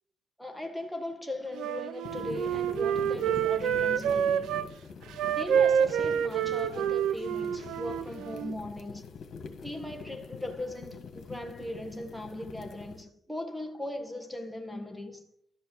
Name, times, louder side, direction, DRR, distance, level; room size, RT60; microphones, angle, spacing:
voice 1, 0.4-4.6 5.2-9.0 9.6-15.3, left 1 dB, ahead, 1.4 m, -38 dB
Wind instrument woodwind instrument, 1.5-4.7 5.1-8.6, right 9 dB, 75° right, 0.5 m, -28 dB
sound 1, 2.0-13.0, left 5 dB, 55° left, 2.0 m, -44 dB
12.0 x 5.1 x 4.8 m
cardioid pair, 110°, 0 cm